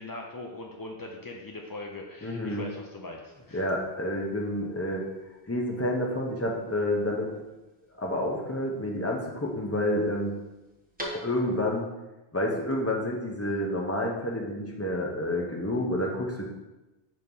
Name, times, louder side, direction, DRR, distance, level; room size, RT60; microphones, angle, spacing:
voice 1, 0.0-3.6, left 2 dB, 35° left, 0 dB, 0.3 m, -40 dB
voice 2, 2.2-2.7 3.5-5.0 5.5-7.3 8.0-10.3 11.1-11.9 12.3-16.5, left 1 dB, 15° left, -1 dB, 0.8 m, -29 dB
sound 1, 3.3-11.8, equal, 10° right, 1.0 m, -48 dB
6.5 x 3.0 x 5.3 m, 1.0 s
omnidirectional pair, 1.1 m